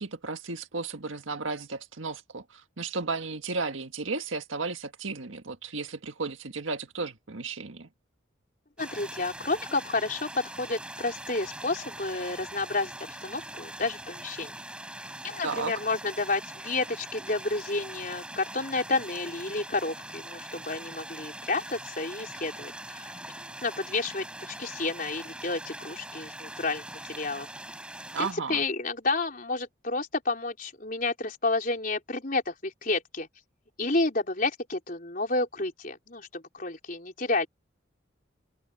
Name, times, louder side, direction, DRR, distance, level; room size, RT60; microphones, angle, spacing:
voice 1, 0.0-7.9 15.4-15.7 28.1-28.6, right 4 dB, 85° right, 1.7 m, -34 dB
voice 2, 8.8-12.9 13.2-14.5 15.2-23.2 23.6-27.5 28.2-33.3 33.8-37.5, left 3 dB, 45° left, 4.5 m, -30 dB
sound 1, 8.8-28.3, right 1 dB, 5° right, 5.4 m, -42 dB
open air
head